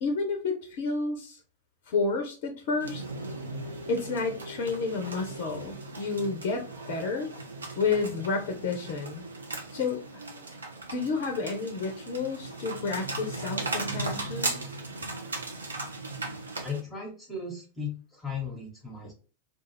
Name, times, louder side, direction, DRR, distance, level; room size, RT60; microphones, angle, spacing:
voice 1, 0.0-1.4 1.9-3.0 3.9-7.3 7.8-9.3 9.7-10.2 10.9-14.6, left 4 dB, 50° left, 4 dB, 0.5 m, -30 dB
sound 1, 2.8-16.8, right 2 dB, 75° right, 0.5 m, -37 dB
voice 2, 16.6-19.1, left 5 dB, 5° left, -3 dB, 0.9 m, -36 dB
2.3 x 2.3 x 3.0 m, 0.37 s
figure-of-eight pair, 90°, 0 cm